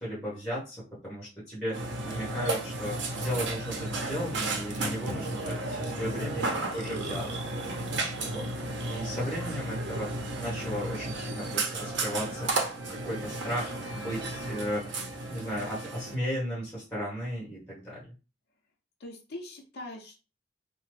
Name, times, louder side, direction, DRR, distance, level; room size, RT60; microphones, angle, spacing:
voice 1, 0.0-7.3 8.2-15.0 15.3-18.1, equal, 5° left, -7 dB, 1.3 m, -35 dB
Burping eructation, 1.7-16.2, right 2 dB, 80° right, 0.6 m, -33 dB
voice 2, 5.9-7.0 19.0-20.3, left 1 dB, 60° left, 0 dB, 0.6 m, -43 dB
2.9 x 2.1 x 3.1 m, 0.32 s
head